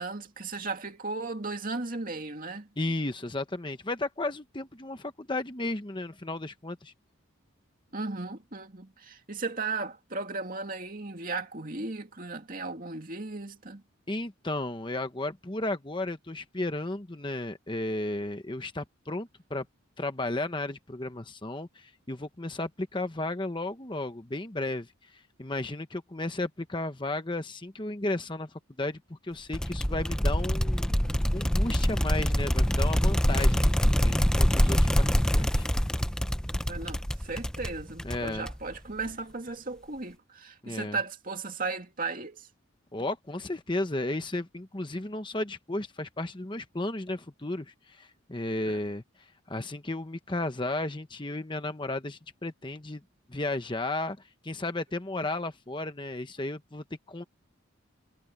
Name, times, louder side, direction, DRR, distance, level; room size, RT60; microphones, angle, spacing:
voice 1, 0.0-2.7 7.9-13.8 36.7-42.5 48.6-48.8, right 3 dB, 40° right, 2.4 m, -36 dB
voice 2, 2.8-6.9 14.1-19.7 20.0-31.0 31.3-35.7 38.0-38.5 40.6-41.0 42.9-53.0 53.3-54.2 54.4-57.2, left 2 dB, 20° left, 1.0 m, -34 dB
sound 1, 29.5-38.8, equal, 5° left, 0.5 m, -25 dB
head